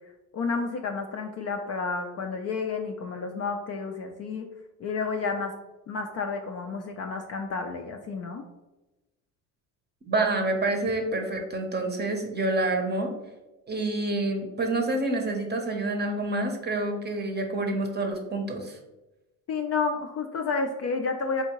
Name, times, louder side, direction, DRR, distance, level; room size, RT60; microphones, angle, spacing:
voice 1, 0.3-4.5 4.8-5.5 5.9-8.4 19.5-21.4, left 4 dB, 40° left, 4 dB, 0.4 m, -30 dB
voice 2, 10.1-13.1 13.7-18.8, right 2 dB, 25° right, 3 dB, 0.7 m, -28 dB
3.4 x 2.7 x 2.9 m, 1.0 s
hypercardioid pair, 60°, 43 cm